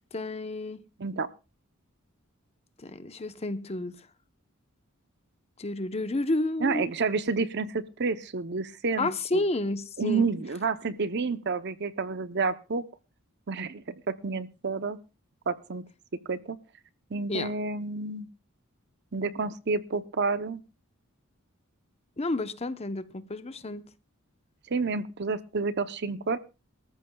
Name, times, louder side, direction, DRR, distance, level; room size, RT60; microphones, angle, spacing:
voice 1, 0.1-0.8 2.8-4.1 5.6-6.9 9.0-10.3 17.3-17.5 22.2-23.8, left 2 dB, 30° left, 0.8 m, -31 dB
voice 2, 6.6-9.4 10.0-12.8 13.5-15.0 15.5-15.8 16.3-16.6 17.1-18.3 19.1-20.6 24.7-26.4, right 4 dB, 55° right, 0.7 m, -29 dB
24.5 x 14.0 x 2.3 m
head